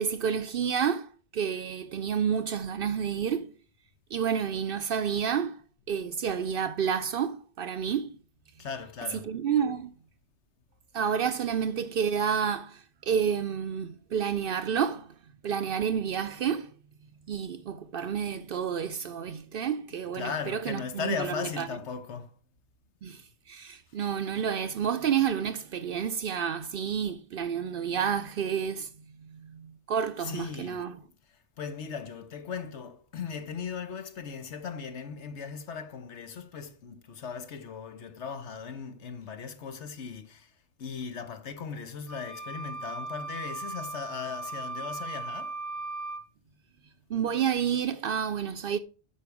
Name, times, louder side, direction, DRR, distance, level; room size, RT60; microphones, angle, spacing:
voice 1, 0.0-3.5 4.1-5.6 5.9-8.2 9.1-9.9 10.9-15.1 15.4-16.7 17.3-21.7 23.0-28.9 29.2-31.0 47.1-48.8, right 7 dB, 60° right, 0.6 m, -30 dB
voice 2, 8.6-9.3 20.1-22.3 30.2-30.8 31.6-40.5 40.8-45.6, left 6 dB, 70° left, 1.3 m, -38 dB
sound 1, 42.1-46.2, right 3 dB, ahead, 0.7 m, -38 dB
8.7 x 5.7 x 4.8 m
omnidirectional pair, 1.2 m